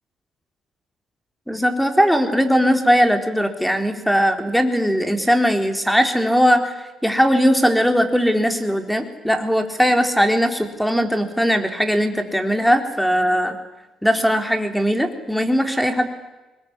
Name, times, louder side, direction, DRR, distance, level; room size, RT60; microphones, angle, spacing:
voice 1, 1.5-6.7 7.0-13.6 14.0-16.1, equal, ahead, 7 dB, 4.0 m, -19 dB
23.5 x 21.5 x 9.9 m, 1.1 s
cardioid pair, 90°, 0 cm